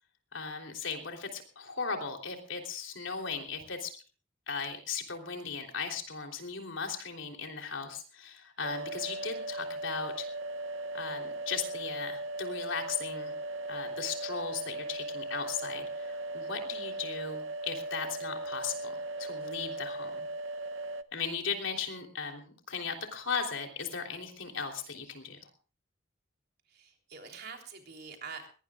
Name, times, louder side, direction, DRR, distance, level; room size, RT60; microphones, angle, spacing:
voice 1, 0.3-3.9 4.5-10.3 10.9-13.3 13.7-20.1 21.1-25.5, left 5 dB, 75° left, 3 dB, 3.4 m, -37 dB
sound 1, 8.6-21.0, right 2 dB, 80° right, 0.8 m, -38 dB
voice 2, 26.7-28.5, right 5 dB, 55° right, 3 dB, 3.4 m, -45 dB
21.5 x 18.5 x 2.4 m, 0.37 s
head